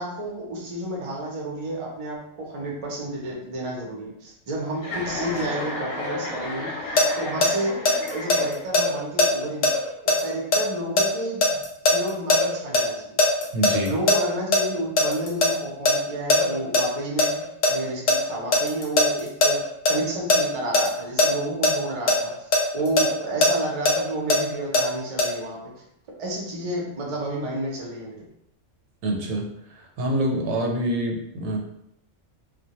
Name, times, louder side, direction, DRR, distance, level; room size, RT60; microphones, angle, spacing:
voice 1, 0.0-6.7 7.2-7.8 8.1-9.8 10.2-11.6 11.9-13.2 13.9-17.4 17.7-22.5 22.7-25.6 26.2-28.3, right 1 dB, 50° right, -2 dB, 0.4 m, -31 dB
Chuckle chortle, 4.8-8.8, left 2 dB, 65° left, 0.8 m, -32 dB
sound 1, 7.0-12.8 13.2-15.5 15.8-15.9 16.3-16.8 17.2-20.4 20.7-20.9 21.2-21.3 21.6-21.7 22.1-24.8 25.2-25.3, left 1 dB, 90° left, 0.4 m, -19 dB
voice 2, 13.5-14.0 29.0-31.6, right 1 dB, 90° right, 1 dB, 1.0 m, -26 dB
2.1 x 2.1 x 2.8 m, 0.76 s
omnidirectional pair, 1.4 m